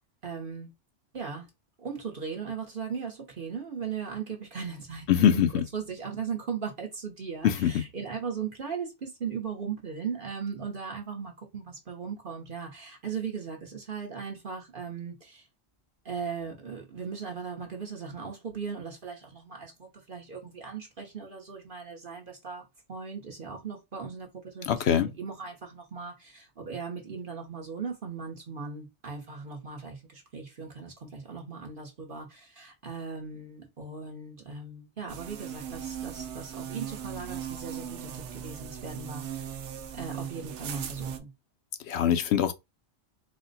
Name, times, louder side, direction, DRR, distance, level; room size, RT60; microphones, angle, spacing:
voice 1, 0.2-0.7 1.1-1.5 1.8-5.1 5.3-5.5 5.7-15.4 16.0-22.6 22.9-39.4 39.9-41.3, right 6 dB, 50° right, 1.1 m, -38 dB
voice 2, 5.1-5.6 7.4-7.8 24.7-25.1 41.9-42.5, left 9 dB, 70° left, 0.8 m, -23 dB
sound 1, 35.1-41.2, right 9 dB, 75° right, 0.9 m, -38 dB
4.2 x 2.1 x 3.9 m
omnidirectional pair, 1.2 m